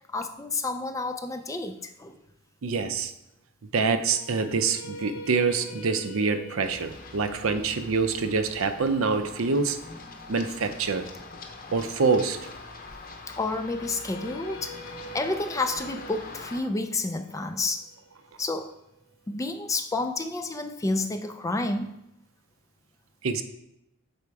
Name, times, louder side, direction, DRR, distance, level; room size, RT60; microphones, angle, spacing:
voice 1, 0.1-2.2 13.3-17.9 18.4-18.7 19.3-22.0, left 2 dB, 15° left, 7 dB, 0.3 m, -30 dB
voice 2, 2.6-3.1 3.7-9.8 10.3-11.1 11.7-12.4 23.2-23.4, right 4 dB, 65° right, 9 dB, 0.5 m, -26 dB
sound 1, 4.0-10.1 13.4-19.5, right 1 dB, 75° left, 0.7 m, -45 dB
Run, 6.6-16.6, left 3 dB, 40° left, 0.7 m, -44 dB
6.9 x 4.3 x 4.7 m, 0.85 s
head